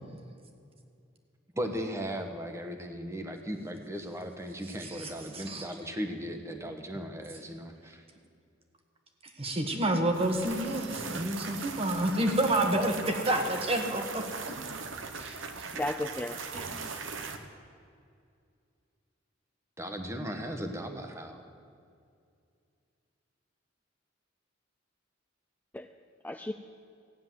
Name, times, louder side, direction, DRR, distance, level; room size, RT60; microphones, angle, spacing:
voice 1, 1.5-8.0 19.8-21.4, equal, 15° right, 5 dB, 1.3 m, -37 dB
voice 2, 4.8-5.7 9.4-14.3 15.2-15.4, right 1 dB, 30° right, 5 dB, 1.5 m, -29 dB
sound 1, 10.1-17.4, right 4 dB, 85° right, 1.2 m, -39 dB
voice 3, 15.7-16.9 25.7-25.9 26.2-26.5, left 1 dB, 10° left, 7 dB, 0.4 m, -35 dB
15.0 x 9.8 x 7.6 m, 2.4 s
head